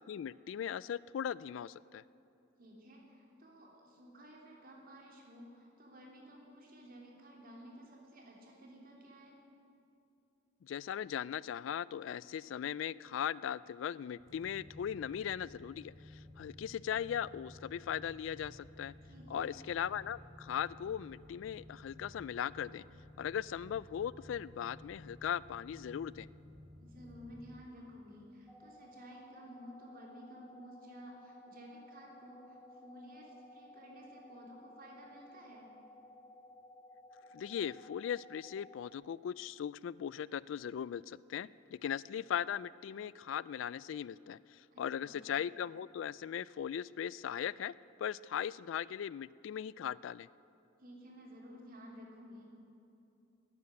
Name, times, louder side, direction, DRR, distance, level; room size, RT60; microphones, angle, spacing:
voice 1, 0.0-2.0 10.6-18.9 19.3-22.8 23.2-26.3 37.3-50.3, left 9 dB, 70° left, 19 dB, 0.3 m, -39 dB
voice 2, 2.6-9.4 19.0-19.5 26.8-35.7 44.7-45.2 50.8-52.5, equal, 50° right, -1 dB, 3.1 m, -54 dB
sound 1, 14.1-27.6, left 1 dB, 65° right, 1.6 m, -55 dB
sound 2, 28.5-38.9, left 1 dB, ahead, 1.0 m, -56 dB
13.5 x 9.8 x 9.8 m, 2.8 s
head